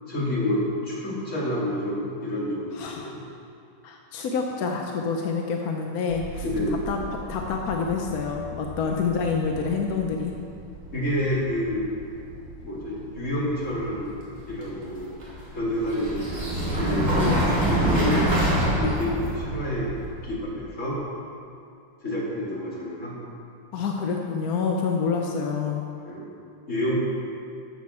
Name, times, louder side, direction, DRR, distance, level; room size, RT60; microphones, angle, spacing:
voice 1, 0.1-3.1 6.4-6.9 8.8-9.0 10.9-11.9 12.6-14.1 14.5-15.1 15.5-17.3 17.7-18.3 18.8-19.9 20.2-21.0 22.0-23.2 26.1-26.2 26.7-26.9, left 1 dB, 35° left, -7 dB, 2.9 m, -28 dB
voice 2, 2.7-3.1 3.8-7.0 7.3-10.3 17.2-17.5 23.7-25.8, left 5 dB, 65° left, 1 dB, 0.9 m, -27 dB
sound 1, 6.1-20.5, right 1 dB, 35° right, 2.5 m, -28 dB
13.0 x 7.7 x 4.3 m, 2.4 s
omnidirectional pair, 2.4 m